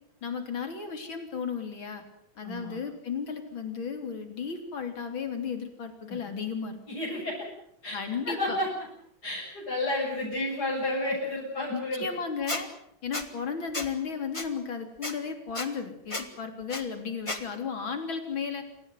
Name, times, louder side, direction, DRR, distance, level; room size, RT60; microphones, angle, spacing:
voice 1, 0.2-2.0 2.4-6.8 7.9-8.6 11.7-12.7 13.0-18.6, left 6 dB, 75° left, 6 dB, 4.1 m, -34 dB
voice 2, 2.4-2.8 6.1-6.2 6.9-7.4 7.8-8.0 8.2-8.7 9.2-12.0, left 1 dB, 50° left, -5 dB, 8.2 m, -31 dB
Squeak, 12.5-12.6 13.1-13.2 13.7-13.9 14.3-14.5 15.0-15.1 15.5-15.7 16.1-16.2 16.7-16.8 17.3-17.4, left 2 dB, 15° left, 2.1 m, -32 dB
28.0 x 16.0 x 9.4 m, 0.70 s
omnidirectional pair, 2.2 m